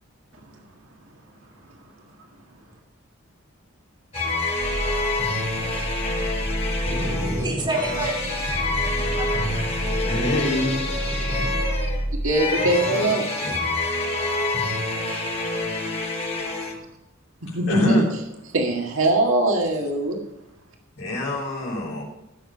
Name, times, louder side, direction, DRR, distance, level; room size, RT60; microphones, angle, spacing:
sound 1, 4.1-16.7, left 2 dB, 35° left, 5.3 m, -27 dB
sound 2, 4.6-12.3, right 1 dB, 60° right, 2.1 m, -30 dB
voice 1, 6.8-11.7 12.6-13.2, right 1 dB, 25° right, -3 dB, 4.1 m, -31 dB
voice 2, 9.8-10.9 13.4-13.6 15.1-15.3 17.5-18.0 20.9-22.0, left 1 dB, 60° left, -7 dB, 4.5 m, -27 dB
voice 3, 12.2-13.3 17.4-18.0 18.5-20.2, right 1 dB, 80° right, 0 dB, 1.8 m, -21 dB
15.0 x 6.7 x 5.6 m, 0.89 s
head